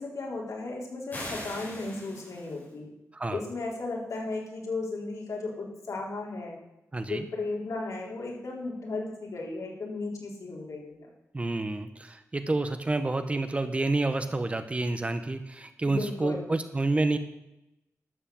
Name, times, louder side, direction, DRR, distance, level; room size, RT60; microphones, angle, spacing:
voice 1, 0.0-2.9 3.3-6.6 7.1-11.1 15.9-16.5, left 3 dB, 85° left, -2 dB, 3.8 m, -35 dB
sound 1, 1.1-2.7, left 1 dB, 35° left, 5.4 m, -40 dB
voice 2, 6.9-7.2 11.3-17.2, right 2 dB, 25° right, 9 dB, 0.9 m, -29 dB
12.5 x 8.1 x 7.0 m, 0.90 s
wide cardioid pair, 165°, 5 cm